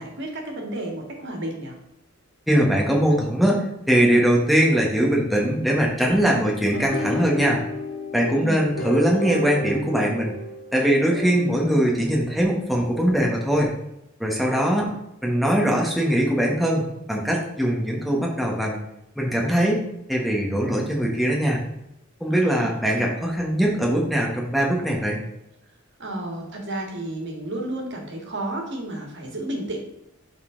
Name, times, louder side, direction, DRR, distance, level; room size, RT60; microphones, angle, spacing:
voice 1, 0.0-1.8 8.3-8.8 22.3-22.8 26.0-29.9, right 1 dB, 55° right, 1 dB, 1.9 m, -32 dB
voice 2, 2.5-7.6 8.1-10.3 10.7-13.7 14.2-14.9 15.2-18.8 19.2-19.8 20.1-21.6 22.2-25.2, equal, ahead, -2 dB, 1.4 m, -21 dB
sound 1, 6.7-11.8, left 1 dB, 80° left, 1.6 m, -31 dB
12.0 x 4.1 x 3.9 m, 0.84 s
head